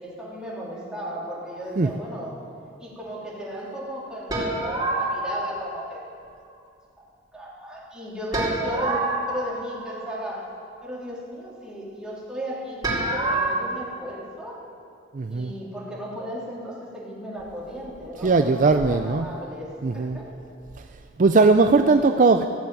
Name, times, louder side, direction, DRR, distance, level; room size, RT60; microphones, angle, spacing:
voice 1, 0.0-2.4 2.8-6.0 7.0-7.1 7.3-10.5 10.8-14.6 15.3-20.3, equal, 5° right, -6 dB, 3.6 m, -35 dB
sound 1, 4.3-5.6 8.3-10.2 12.8-13.6, right 2 dB, 20° right, 4.6 m, -26 dB
voice 2, 15.1-15.5 18.2-19.2 19.8-20.2 21.2-22.5, right 3 dB, 40° right, 7 dB, 0.5 m, -19 dB
15.0 x 8.8 x 9.1 m, 2.3 s
head